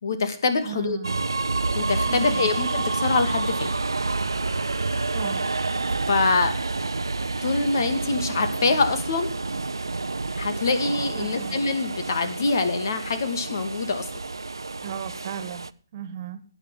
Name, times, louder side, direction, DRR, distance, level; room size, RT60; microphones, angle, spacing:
voice 1, 0.0-1.0 1.7-3.7 6.1-6.5 7.4-9.3 10.4-14.1, left 3 dB, 60° left, 9 dB, 2.5 m, -24 dB
voice 2, 0.6-1.3 2.0-2.5 5.1-5.4 11.1-11.6 14.8-15.7 15.9-16.4, right 8 dB, 40° right, 13 dB, 1.8 m, -35 dB
sound 1, 1.0-15.7, right 3 dB, 85° right, 0.7 m, -29 dB
12.5 x 9.5 x 7.4 m, 0.39 s
figure-of-eight pair, 145°, 2 cm